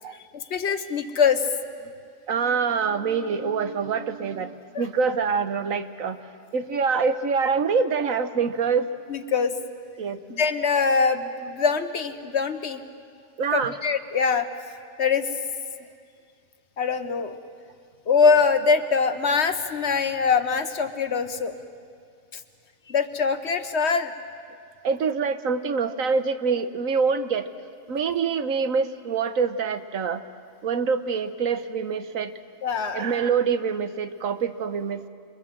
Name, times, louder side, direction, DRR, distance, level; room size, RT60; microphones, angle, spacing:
voice 1, 0.3-1.4 4.7-4.8 9.1-9.6 10.4-12.8 13.5-14.5 15.0-15.3 16.8-17.4 18.1-21.5 22.9-24.1 32.6-33.1, left 5 dB, 55° left, 9 dB, 1.3 m, -23 dB
voice 2, 2.3-6.2 6.5-8.9 10.0-10.4 13.4-13.8 24.8-27.5 27.9-30.2 30.6-32.3 32.9-35.1, right 5 dB, 80° right, 10 dB, 1.5 m, -25 dB
28.0 x 23.0 x 7.4 m, 2.3 s
omnidirectional pair, 1.4 m